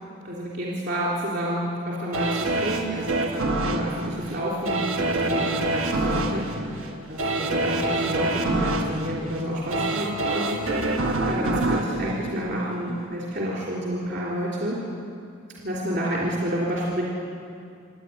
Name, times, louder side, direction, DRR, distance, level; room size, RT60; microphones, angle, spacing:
voice 1, 0.2-10.9 11.3-14.8 15.6-17.0, equal, 55° right, -6 dB, 3.4 m, -29 dB
sound 1, 2.1-13.1 13.5-13.6, right 2 dB, 85° right, 1.7 m, -26 dB
27.5 x 10.0 x 9.2 m, 2.4 s
head